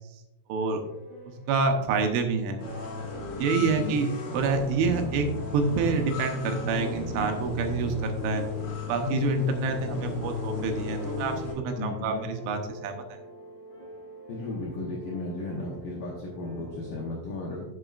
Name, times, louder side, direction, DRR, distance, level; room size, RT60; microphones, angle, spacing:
voice 1, 0.5-0.8 1.3-2.6 3.4-5.3 5.5-8.5 8.9-13.2, right 4 dB, 80° right, 4 dB, 3.2 m, -27 dB
sound 1, 0.6-17.0, equal, 30° left, 3.5 m, -47 dB
sound 2, 2.6-11.5, left 4 dB, 55° left, 2.9 m, -34 dB
voice 2, 3.6-4.0 11.8-12.3 14.3-17.7, left 2 dB, 85° left, -3 dB, 1.9 m, -35 dB
11.0 x 7.2 x 2.5 m, 0.97 s
omnidirectional pair, 5.7 m